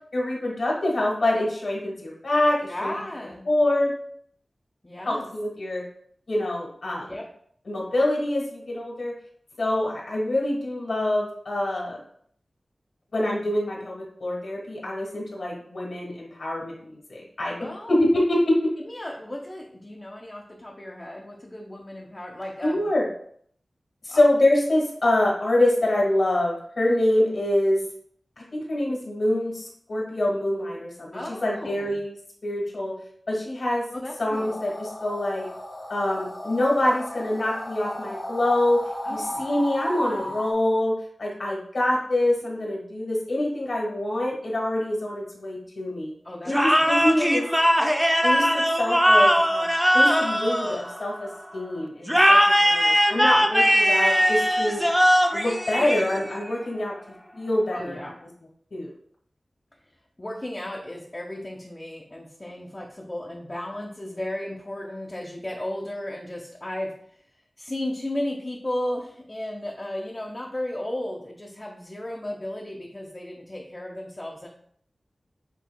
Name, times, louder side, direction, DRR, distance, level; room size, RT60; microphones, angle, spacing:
voice 1, 0.1-2.9 3.4-3.9 5.0-5.8 6.3-7.1 7.6-9.1 9.6-12.0 13.1-18.6 22.6-23.1 24.0-27.8 28.5-32.1 32.4-32.9 33.3-33.8 34.2-35.5 35.9-38.8 39.1-40.9 41.2-46.1 46.4-47.5 48.2-49.7 49.9-54.8 55.3-56.9 57.3-58.0 58.7-58.9, left 1 dB, 80° left, -3 dB, 1.6 m, -25 dB
voice 2, 2.7-3.5 4.8-5.3 7.0-7.2 17.6-18.1 18.8-22.9 24.1-24.2 31.1-32.0 33.9-34.6 39.0-39.5 40.0-40.3 46.2-47.0 57.7-58.2 60.2-66.9 67.6-74.5, left 1 dB, 30° left, -2 dB, 0.8 m, -35 dB
sound 1, 34.3-40.5, left 1 dB, 55° left, 1.0 m, -35 dB
sound 2, 46.5-51.3 52.1-56.5, equal, ahead, 0.5 m, -20 dB
7.4 x 3.1 x 2.2 m, 0.63 s
wide cardioid pair, 60°, 0 cm